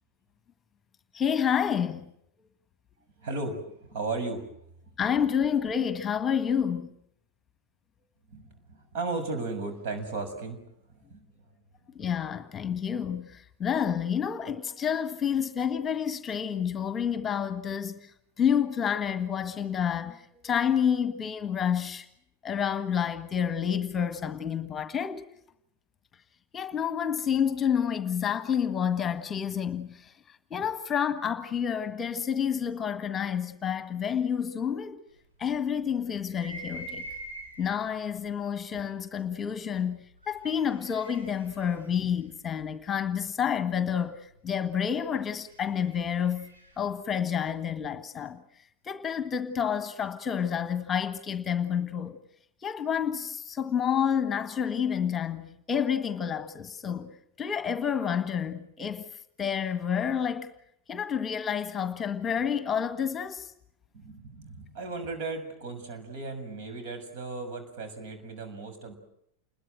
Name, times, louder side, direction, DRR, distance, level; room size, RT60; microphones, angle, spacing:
voice 1, 1.1-2.1 5.0-6.9 11.9-18.1 18.4-22.1 22.4-25.3 26.5-35.0 35.4-37.0 37.6-48.4 48.8-52.2 52.6-57.1 57.4-59.1 59.4-60.5 60.9-63.5, left 8 dB, 20° left, 1.6 m, -29 dB
voice 2, 3.2-4.5 8.3-10.6 10.9-11.2 63.9-68.9, right 3 dB, 50° right, 6.7 m, -35 dB
sound 1, 36.2-37.9 38.7-38.8 40.2-43.0 45.1-46.9, right 1 dB, 80° right, 7.9 m, -45 dB
28.5 x 21.5 x 7.9 m
figure-of-eight pair, 90°, 0 cm